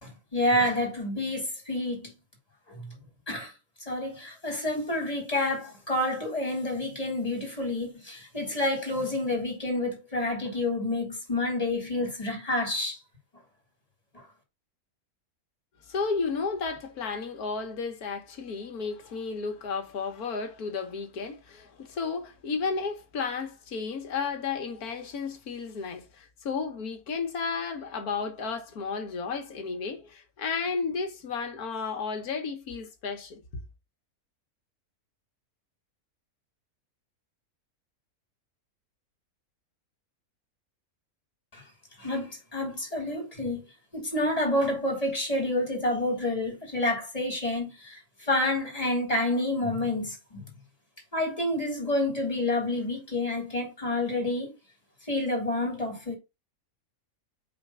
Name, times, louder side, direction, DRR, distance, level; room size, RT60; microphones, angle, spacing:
voice 1, 0.0-2.1 2.8-2.9 3.3-3.5 3.9-13.0 14.1-14.2 41.5-41.6 42.0-43.6 43.9-50.4 51.1-54.5 55.1-56.2, left 1 dB, 25° left, 2.5 m, -29 dB
voice 2, 15.8-33.4, left 5 dB, 85° left, 1.7 m, -33 dB
5.1 x 3.5 x 5.4 m
omnidirectional pair, 1.6 m